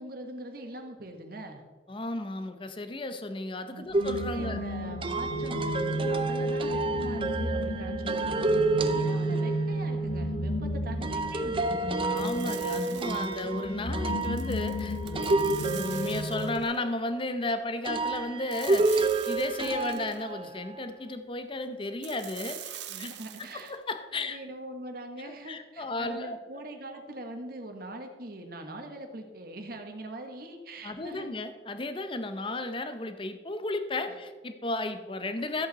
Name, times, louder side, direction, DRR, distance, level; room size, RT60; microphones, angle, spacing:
voice 1, 0.0-1.6 3.7-3.8 4.1-8.5 8.9-11.8 22.9-23.8 24.1-31.3 34.0-34.1, right 1 dB, 55° right, 5 dB, 1.4 m, -42 dB
voice 2, 1.9-4.6 12.0-22.6 23.0-23.1 23.5-24.4 25.5-26.4 30.8-35.7, left 2 dB, 30° left, 9 dB, 0.8 m, -34 dB
sound 1, 3.9-16.6, equal, 85° left, 0.9 m, -32 dB
sound 2, 3.9-9.8 11.0-17.1 17.8-20.8, right 3 dB, 30° right, 0.6 m, -30 dB
sound 3, 12.2-13.5 14.2-16.7 18.5-20.2 22.0-23.7, right 11 dB, 80° right, 0.9 m, -44 dB
13.5 x 8.0 x 4.1 m, 1.4 s
head